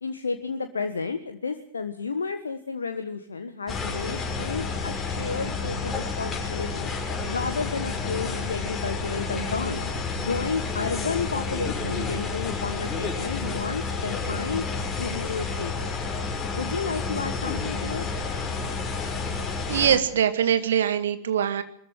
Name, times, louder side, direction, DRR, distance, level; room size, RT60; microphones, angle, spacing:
voice 1, 0.0-6.9 7.2-9.8 10.2-14.7 15.0-15.9 16.5-18.0, left 5 dB, 75° left, 8 dB, 1.4 m, -32 dB
sound 1, 3.7-20.0, left 4 dB, 20° left, 6.0 m, -30 dB
voice 2, 19.7-21.6, right 9 dB, 65° right, 10 dB, 2.1 m, -23 dB
23.0 x 14.0 x 9.4 m, 0.63 s
figure-of-eight pair, 90°, 0 cm